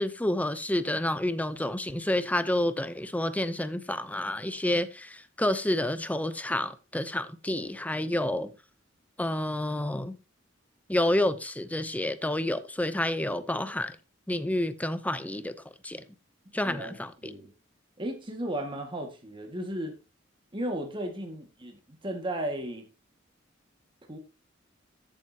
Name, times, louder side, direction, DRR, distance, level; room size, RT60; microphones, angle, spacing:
voice 1, 0.0-8.5 9.2-10.2 10.9-14.0 14.3-15.5 15.8-16.0 16.5-17.1, left 1 dB, 10° left, 0.7 m, -29 dB
voice 2, 16.6-17.5 18.0-19.9 20.5-22.9 24.1-24.2, right 1 dB, 25° right, 1.9 m, -35 dB
13.5 x 7.5 x 2.8 m
head